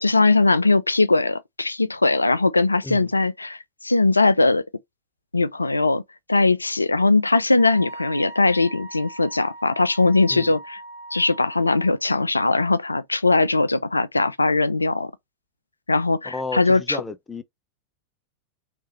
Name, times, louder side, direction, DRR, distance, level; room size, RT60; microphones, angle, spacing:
voice 1, 0.0-4.6 5.3-6.0 6.3-10.8 11.1-15.1 15.9-17.0, left 3 dB, 80° left, 0.4 m, -20 dB
Wind instrument woodwind instrument, 7.6-12.0, right 2 dB, 65° right, 1.1 m, -40 dB
voice 2, 16.2-17.4, left 3 dB, 15° left, 0.5 m, -32 dB
3.3 x 3.1 x 3.0 m
figure-of-eight pair, 90°, 0 cm